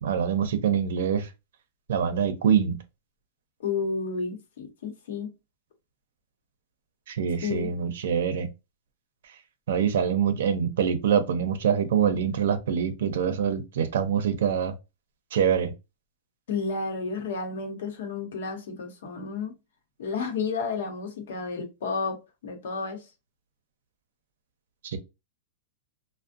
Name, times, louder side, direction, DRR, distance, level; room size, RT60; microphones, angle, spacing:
voice 1, 0.0-1.3 1.9-2.8 7.1-8.5 9.7-14.7 15.3-15.7 24.8-25.0, right 7 dB, 75° right, 0.5 m, -25 dB
voice 2, 3.6-5.3 7.4-7.7 16.5-19.6 20.0-23.1, left 4 dB, 80° left, 0.8 m, -31 dB
2.5 x 2.1 x 2.4 m
supercardioid pair, 150°, 0 cm